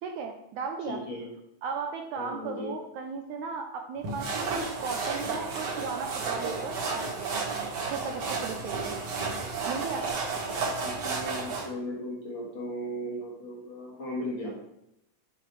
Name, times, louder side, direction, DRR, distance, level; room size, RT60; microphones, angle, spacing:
voice 1, 0.0-1.0 1.6-7.4 7.9-8.9 9.7-10.0, right 5 dB, 85° right, 4 dB, 1.7 m, -36 dB
voice 2, 0.9-1.3 2.2-2.8 10.8-14.5, equal, 55° left, -2 dB, 1.5 m, -36 dB
sound 1, 4.0-11.7, right 4 dB, 55° right, 2.2 m, -32 dB
8.5 x 5.7 x 3.1 m, 0.79 s
omnidirectional pair, 3.8 m